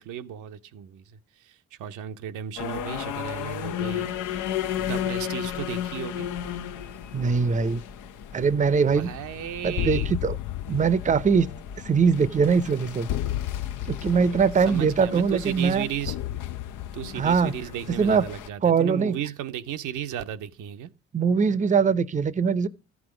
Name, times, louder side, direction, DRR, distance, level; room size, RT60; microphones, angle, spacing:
voice 1, 0.0-4.4 4.8-6.3 8.9-10.2 14.7-16.2 16.9-20.9, right 10 dB, 85° right, 0.8 m, -34 dB
sound 1, 2.6-18.5, left 10 dB, 85° left, 0.8 m, -35 dB
voice 2, 7.1-7.8 8.3-9.1 9.6-10.4 10.7-11.5 11.8-13.1 13.9-15.9 17.2-17.5 18.0-18.2 18.6-19.2 21.1-22.7, right 5 dB, 25° right, 0.6 m, -22 dB
sound 2, 8.9-18.3, left 12 dB, 65° left, 0.4 m, -34 dB
13.0 x 6.1 x 4.9 m
cardioid pair, 90°, 30 cm